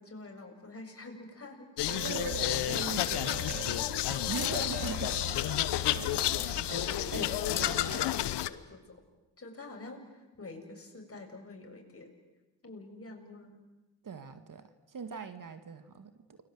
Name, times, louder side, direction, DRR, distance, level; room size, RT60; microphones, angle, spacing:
voice 1, 0.0-1.7 2.5-2.7 5.8-6.5 6.9-9.0 9.4-12.1 12.6-13.6, left 2 dB, 35° left, 3 dB, 7.5 m, -47 dB
sound 1, 1.8-8.5, left 14 dB, 75° left, 1.1 m, -31 dB
sound 2, 1.9-8.3, right 8 dB, 65° right, 2.2 m, -43 dB
voice 2, 2.0-5.4 6.0-6.2 7.1-7.3 14.0-16.4, right 5 dB, 50° right, 9 dB, 2.1 m, -41 dB
29.5 x 22.5 x 8.0 m, 1.1 s
supercardioid pair, 55°, 42 cm